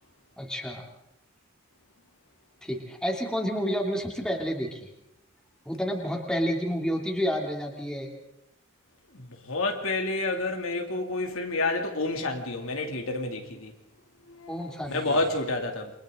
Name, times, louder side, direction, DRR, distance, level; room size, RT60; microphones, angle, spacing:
voice 1, 0.4-0.8 2.6-4.9 5.6-8.1 14.5-15.2, equal, 5° left, 2.9 m, -30 dB
voice 2, 9.1-13.7 14.4-15.9, left 2 dB, 70° left, 2.7 m, -29 dB
28.5 x 25.0 x 3.9 m
head